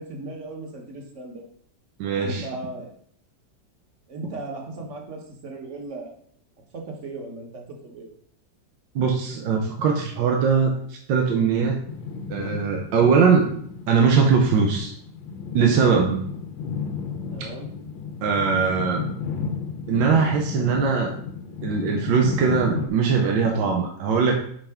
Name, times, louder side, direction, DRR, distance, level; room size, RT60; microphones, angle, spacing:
voice 1, 0.0-1.5 2.2-2.9 4.1-6.1 6.7-8.1 17.3-17.7, right 2 dB, 45° right, 1 dB, 1.3 m, -37 dB
voice 2, 2.0-2.5 8.9-11.8 12.3-13.5 13.9-14.9 15.5-16.2 18.2-19.0 19.9-21.1 21.6-24.3, right 5 dB, 80° right, 2 dB, 1.5 m, -21 dB
sound 1, 11.9-22.9, left 5 dB, 85° left, 1.5 m, -33 dB
5.7 x 5.6 x 3.6 m, 0.62 s
omnidirectional pair, 2.0 m